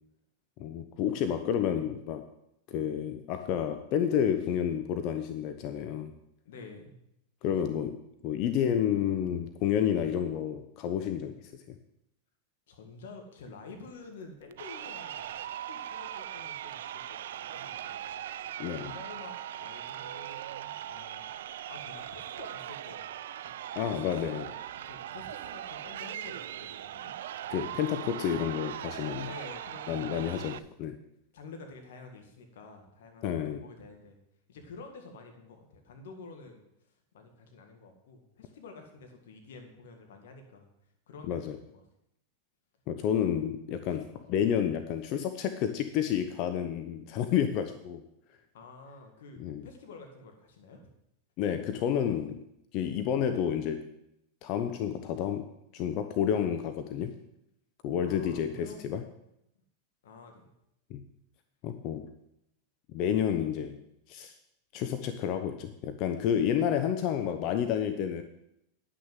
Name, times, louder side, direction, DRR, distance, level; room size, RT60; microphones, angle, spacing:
voice 1, 0.6-2.2 2.7-6.1 7.4-8.0 8.2-11.6 18.6-19.0 23.8-24.5 27.5-29.3 29.9-30.9 33.2-33.6 41.3-41.6 42.9-48.0 49.4-49.7 51.4-52.4 52.7-53.9 54.4-55.5 55.7-57.1 57.8-59.0 60.9-61.0 61.6-62.1 62.9-63.8 64.1-64.3 64.7-68.2, left 9 dB, 50° left, 8 dB, 0.8 m, -30 dB
voice 2, 6.5-7.0 12.7-15.4 15.7-18.2 18.7-21.3 21.7-23.1 23.8-27.5 29.3-30.6 31.3-34.2 34.5-36.7 37.1-40.7 41.1-41.8 48.5-50.8 58.0-58.9 60.0-60.5 66.6-66.7, left 3 dB, 70° left, 4 dB, 1.8 m, -49 dB
Crowd, 14.5-30.6, right 11 dB, 75° right, 0.4 m, -40 dB
9.9 x 6.4 x 7.5 m, 0.80 s
hypercardioid pair, 100°, 0 cm